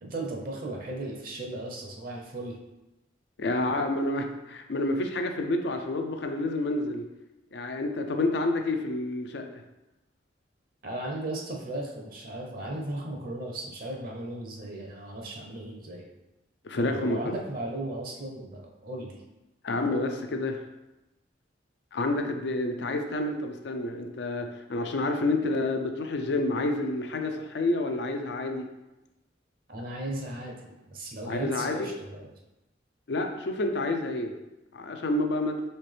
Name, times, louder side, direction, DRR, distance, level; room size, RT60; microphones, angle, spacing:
voice 1, 0.0-2.6 10.8-16.0 16.8-19.2 29.7-30.6 30.9-32.3, right 1 dB, 50° right, 0 dB, 0.7 m, -36 dB
voice 2, 3.4-7.0 7.5-9.5 16.6-17.3 19.6-20.6 21.9-28.7 31.2-31.8 33.1-34.3 34.7-35.6, left 2 dB, 60° left, 5 dB, 0.5 m, -29 dB
4.3 x 3.4 x 3.3 m, 0.99 s
head